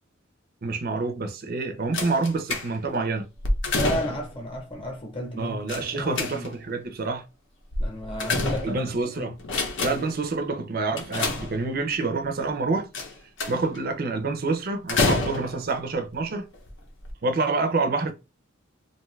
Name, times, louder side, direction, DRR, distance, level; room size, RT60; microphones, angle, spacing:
voice 1, 0.6-3.3 5.4-7.2 8.6-9.4 9.8-12.9 13.5-16.5 17.2-18.1, right 3 dB, 45° right, 0.5 m, -27 dB
sound 1, 1.9-3.0 3.4-4.4 5.7-6.7 7.7-9.0 9.4-10.2 11.0-11.9 12.9-13.8 14.9-15.7 16.5-16.7 17.0-17.1, left 2 dB, 60° left, 0.6 m, -28 dB
voice 2, 3.7-6.5 7.8-8.8 9.2-9.4 9.9-10.0, equal, 25° left, 0.8 m, -33 dB
2.6 x 2.3 x 3.1 m
head